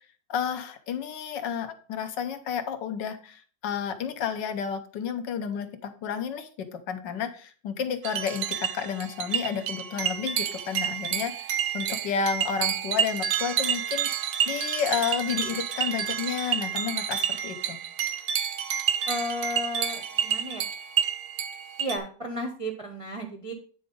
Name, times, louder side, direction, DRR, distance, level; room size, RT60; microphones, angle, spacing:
voice 1, 0.3-17.8, left 7 dB, 80° left, 8 dB, 1.5 m, -31 dB
sound 1, 8.0-22.0, right 9 dB, 85° right, 0.6 m, -29 dB
voice 2, 19.1-20.6 21.8-23.5, equal, 40° right, 2 dB, 0.4 m, -33 dB
8.9 x 3.9 x 5.2 m, 0.42 s
omnidirectional pair, 1.9 m